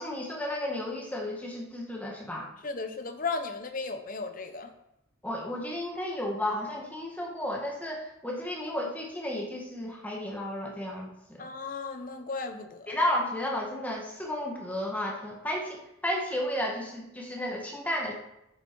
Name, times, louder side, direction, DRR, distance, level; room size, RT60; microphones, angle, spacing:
voice 1, 0.0-2.5 5.2-11.5 12.9-18.1, left 1 dB, 5° left, -1 dB, 1.6 m, -33 dB
voice 2, 2.6-4.7 11.4-13.0, left 4 dB, 40° left, 8 dB, 0.8 m, -35 dB
10.0 x 6.9 x 4.6 m, 0.85 s
head